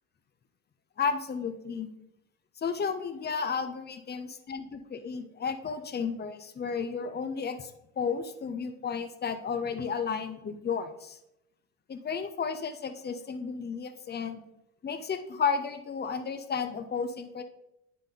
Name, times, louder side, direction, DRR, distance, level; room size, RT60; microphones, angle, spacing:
voice 1, 1.0-1.9 2.6-7.7 8.0-11.2 11.9-14.4 14.8-17.4, left 6 dB, 25° left, 8 dB, 0.7 m, -33 dB
10.5 x 3.7 x 3.7 m, 0.82 s
figure-of-eight pair, 60°, 42 cm